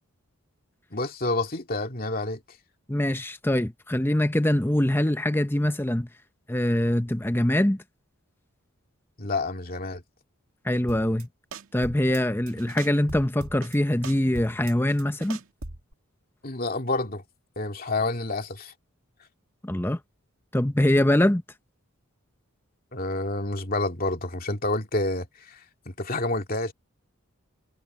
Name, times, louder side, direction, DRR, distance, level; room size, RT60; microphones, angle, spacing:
voice 1, 0.9-2.4 9.2-10.0 16.4-17.2 17.6-18.7 22.9-25.6 25.9-26.7, left 2 dB, 45° left, 2.4 m, -28 dB
voice 2, 2.9-6.1 6.5-7.8 10.6-11.3 11.7-15.4 19.6-20.0 20.5-21.4, left 1 dB, 10° left, 0.8 m, -23 dB
sound 1, 10.9-11.2 11.5-12.2 12.5-13.8 14.0-15.9, right 3 dB, 75° right, 2.1 m, -40 dB
head